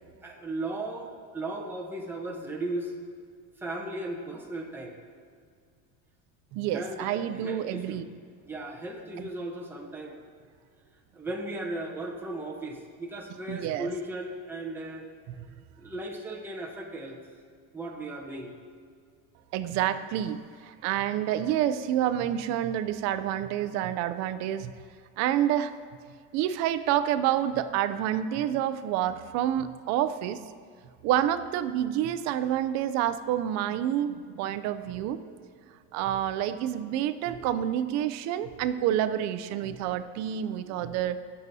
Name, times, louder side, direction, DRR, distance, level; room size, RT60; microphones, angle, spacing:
voice 1, 0.0-2.9 3.6-5.0 6.7-8.1 8.4-10.2 11.1-15.1 15.8-17.2 17.7-18.5, right 1 dB, 5° right, -1 dB, 0.8 m, -36 dB
voice 2, 6.5-8.0 9.2-9.3 13.5-13.9 19.5-24.7 25.2-25.7 26.3-30.4 31.0-35.5 35.9-41.2, right 11 dB, 50° right, 13 dB, 0.4 m, -28 dB
16.5 x 6.8 x 2.7 m, 2.1 s
cardioid pair, 165°, 36 cm